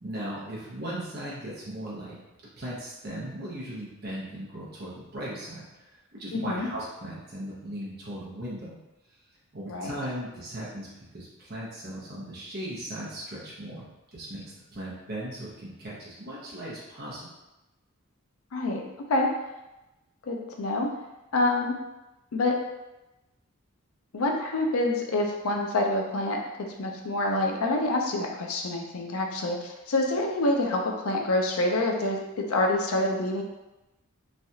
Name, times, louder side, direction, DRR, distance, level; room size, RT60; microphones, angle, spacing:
voice 1, 0.0-2.2 2.6-8.8 9.5-13.9 14.1-17.3, right 1 dB, 45° right, -7 dB, 0.7 m, -38 dB
voice 2, 6.3-6.7 9.7-9.9 18.5-18.8 19.1-19.3 20.2-20.9 21.3-21.8 22.3-22.6 24.1-33.4, left 2 dB, 75° left, 1 dB, 0.5 m, -27 dB
3.2 x 2.3 x 2.7 m, 1.0 s
head